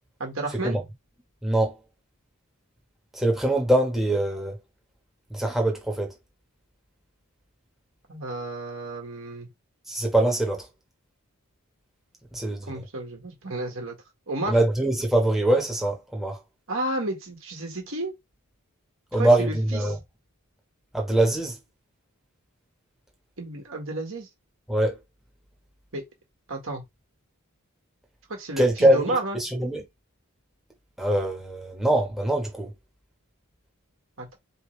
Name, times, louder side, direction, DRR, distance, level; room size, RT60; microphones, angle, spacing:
voice 1, 0.2-0.8 8.1-9.5 12.7-14.0 14.3-14.6 16.7-18.1 19.1-20.0 23.4-24.3 25.9-26.0 26.5-26.8 28.3-29.4 34.2-34.4, right 2 dB, 60° right, 1.5 m, -32 dB
voice 2, 1.4-1.8 3.1-4.6 5.3-6.1 9.9-10.6 12.3-12.8 14.5-16.4 19.1-20.0 20.9-21.6 24.7-25.0 28.6-29.8 31.0-32.7, right 1 dB, ahead, 1.2 m, -23 dB
4.5 x 3.3 x 3.2 m
head